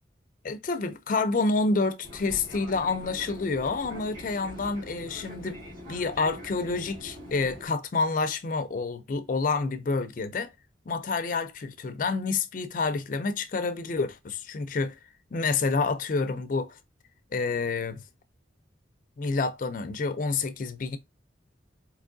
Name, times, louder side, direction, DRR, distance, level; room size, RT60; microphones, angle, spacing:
voice 1, 0.4-5.6 5.9-10.5 10.9-15.0 15.3-16.8 17.3-18.0 19.2-21.0, left 4 dB, 45° left, 0.4 m, -28 dB
Fixed-wing aircraft airplane, 2.0-7.7, equal, 50° right, 2.0 m, -43 dB
4.5 x 2.9 x 2.5 m
head